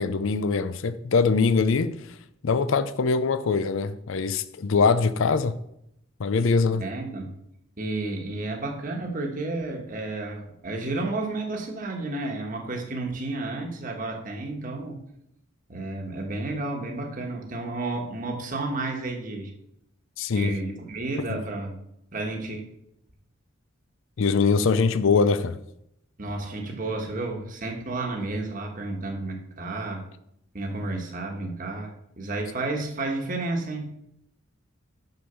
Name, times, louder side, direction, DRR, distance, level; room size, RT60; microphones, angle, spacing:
voice 1, 0.0-1.9 2.4-5.5 6.2-6.8 20.2-20.6 21.3-21.4 24.2-25.6, left 4 dB, 70° left, 0.5 m, -23 dB
voice 2, 6.8-7.4 7.8-15.0 15.7-19.5 20.3-21.8 22.1-22.6 26.2-30.0 30.5-33.9, right 2 dB, 40° right, 1.2 m, -31 dB
6.7 x 6.1 x 6.7 m
head